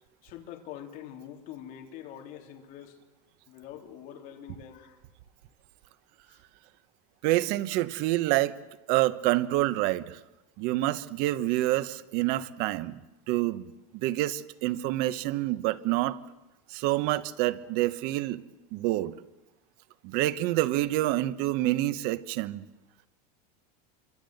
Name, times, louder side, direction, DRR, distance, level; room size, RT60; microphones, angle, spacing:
voice 1, 0.2-3.0 3.5-5.0 6.3-6.4, left 10 dB, 45° left, 2 dB, 3.7 m, -44 dB
voice 2, 7.2-8.5 8.9-10.2 10.6-13.0 13.3-13.6 13.9-16.2 16.7-18.4 18.7-19.1 20.0-22.6, right 16 dB, 50° right, 14 dB, 1.1 m, -27 dB
27.0 x 25.0 x 8.0 m, 1.0 s
supercardioid pair, 165°, 20 cm